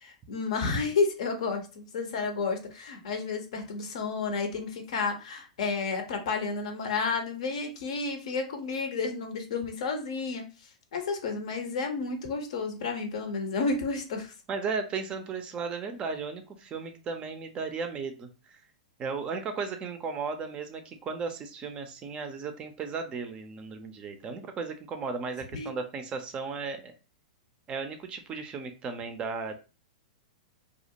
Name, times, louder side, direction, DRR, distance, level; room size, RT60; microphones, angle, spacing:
voice 1, 0.0-10.4 10.9-14.3 25.5-25.7, left 4 dB, 60° left, 5 dB, 0.6 m, -31 dB
voice 2, 14.5-18.6 19.0-26.9 27.7-29.5, right 5 dB, 25° right, 7 dB, 0.4 m, -35 dB
2.3 x 2.1 x 2.7 m, 0.32 s
figure-of-eight pair, 105°, 4 cm